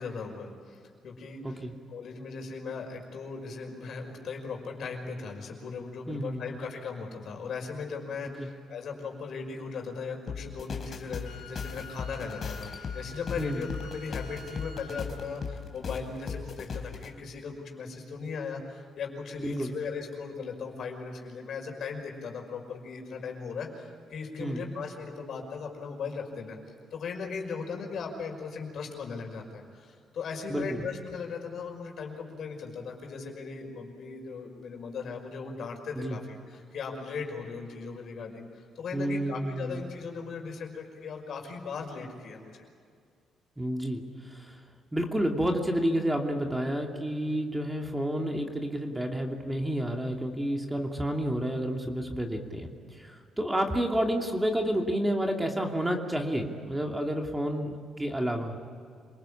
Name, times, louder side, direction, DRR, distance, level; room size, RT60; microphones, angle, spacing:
voice 1, 0.0-26.6 26.9-42.6, left 5 dB, 65° left, 2 dB, 5.6 m, -38 dB
voice 2, 6.1-6.7 8.4-8.5 13.4-13.7 19.4-19.7 24.4-24.7 30.5-30.8 36.0-36.2 38.9-39.8 43.6-44.6 44.9-58.6, equal, 10° right, 2 dB, 2.7 m, -30 dB
sound 1, 10.3-17.1, left 6 dB, 50° left, 3.5 m, -38 dB
Wind instrument woodwind instrument, 11.2-15.1, left 3 dB, 85° left, 3.6 m, -47 dB
27.5 x 19.5 x 8.7 m, 2.3 s
cardioid pair, 90°, 0 cm